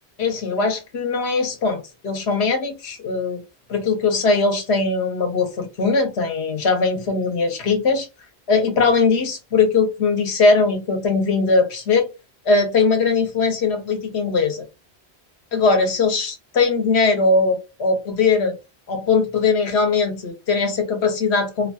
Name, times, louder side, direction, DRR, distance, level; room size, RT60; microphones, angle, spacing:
voice 1, 0.2-3.4 3.7-8.1 8.5-12.1 12.5-14.7 15.5-18.6 18.9-21.7, left 4 dB, 75° left, 1.1 m, -20 dB
2.8 x 2.3 x 2.7 m
omnidirectional pair, 1.1 m